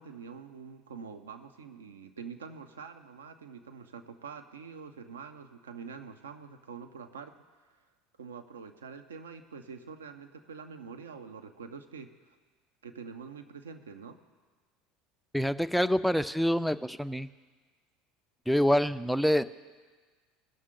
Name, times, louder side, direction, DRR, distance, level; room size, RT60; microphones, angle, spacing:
voice 1, 0.0-7.3 8.2-12.4 12.8-14.2, right 6 dB, 80° right, 8 dB, 0.7 m, -45 dB
voice 2, 15.3-17.3 18.5-19.4, equal, ahead, 12 dB, 0.4 m, -26 dB
18.5 x 6.5 x 3.7 m, 1.4 s
hypercardioid pair, 70°, 0 cm